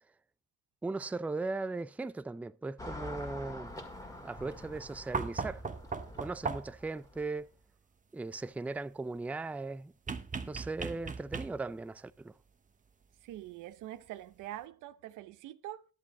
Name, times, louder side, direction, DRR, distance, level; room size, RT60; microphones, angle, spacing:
voice 1, 0.8-3.8 4.2-5.7 6.2-7.5 8.1-9.9 10.5-12.3, right 3 dB, 5° right, 0.4 m, -38 dB
Car passing by / Traffic noise roadway noise, 2.8-7.4, left 1 dB, 10° left, 1.9 m, -46 dB
sound 1, 5.1-6.9 10.1-11.8 13.4-13.5, right 4 dB, 25° right, 0.9 m, -38 dB
voice 2, 13.2-15.8, right 13 dB, 90° right, 0.7 m, -44 dB
11.5 x 7.5 x 4.1 m
cardioid pair, 90°, 30 cm